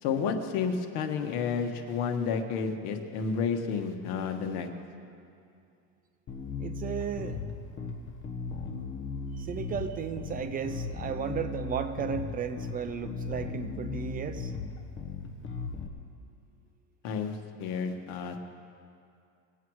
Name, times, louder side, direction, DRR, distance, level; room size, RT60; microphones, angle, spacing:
voice 1, 0.0-4.7 17.0-18.4, left 6 dB, 75° left, 5 dB, 1.4 m, -31 dB
Bass guitar, 6.3-15.9, left 4 dB, 35° left, 1.2 m, -37 dB
voice 2, 6.6-7.4 9.3-14.5, right 7 dB, 25° right, 9 dB, 0.4 m, -34 dB
21.5 x 8.2 x 4.7 m, 2.5 s
cardioid pair, 155°, 35 cm